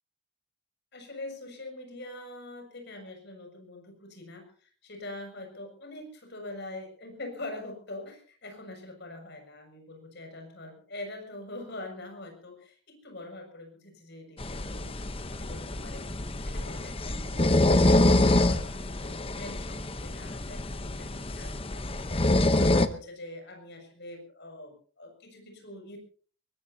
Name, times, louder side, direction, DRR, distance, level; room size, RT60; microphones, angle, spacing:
voice 1, 0.9-14.9 15.3-16.1 16.4-26.0, left 2 dB, 50° left, 4 dB, 6.7 m, -44 dB
sound 1, 14.4-22.9, left 2 dB, 25° left, 0.9 m, -26 dB
22.5 x 20.5 x 2.8 m, 0.42 s
head